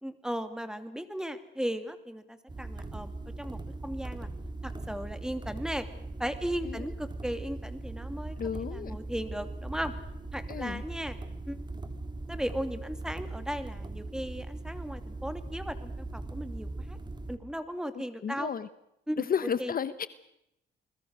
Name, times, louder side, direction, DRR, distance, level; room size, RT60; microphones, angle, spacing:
voice 1, 0.0-3.1 3.4-4.3 4.6-5.9 6.2-9.9 10.3-11.2 11.5-11.6 12.3-17.0 17.3-18.5 19.1-19.3 19.6-19.8, equal, 5° right, 9 dB, 2.7 m, -36 dB
sound 1, 2.5-17.4, right 2 dB, 20° right, 3.3 m, -40 dB
voice 2, 8.4-9.0 10.5-10.8 18.2-18.7 19.2-20.1, left 7 dB, 45° left, 14 dB, 1.1 m, -32 dB
29.0 x 21.0 x 6.6 m, 0.82 s
cardioid pair, 90°, 20 cm